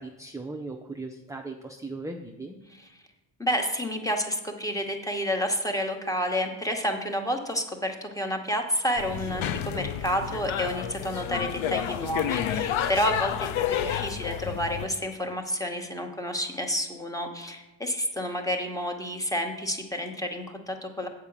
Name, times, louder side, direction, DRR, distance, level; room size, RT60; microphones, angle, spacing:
voice 1, 0.0-2.6, right 2 dB, 10° right, 2 dB, 0.3 m, -38 dB
voice 2, 3.4-21.1, equal, 5° left, 3 dB, 0.9 m, -30 dB
sound 1, 9.0-14.9, left 9 dB, 90° left, 0.6 m, -30 dB
8.1 x 4.8 x 7.3 m, 1.0 s
wide cardioid pair, 145°, 46 cm